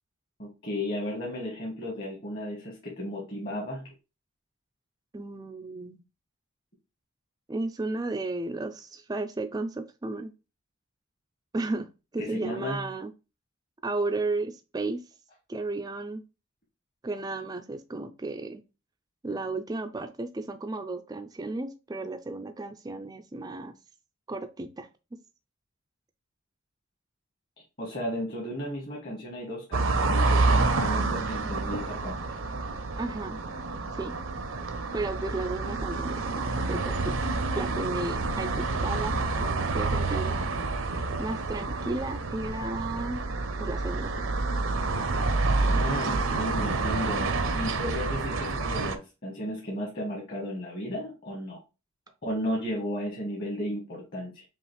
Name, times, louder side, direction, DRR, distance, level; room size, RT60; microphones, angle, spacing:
voice 1, 0.4-3.9 12.2-12.8 27.8-32.2 45.5-51.6 52.2-54.4, equal, 45° left, 1.2 m, -34 dB
voice 2, 5.1-6.0 7.5-10.3 11.5-13.1 13.8-15.0 15.5-16.2 17.0-18.6 19.2-23.7 24.3-24.9 33.0-33.4 33.9-34.2 34.9-37.1 37.5-40.4 41.2-43.2 43.6-44.1, right 2 dB, 20° right, 0.3 m, -34 dB
sound 1, 29.7-49.0, right 3 dB, 65° right, 0.6 m, -28 dB
5.5 x 2.4 x 3.1 m
head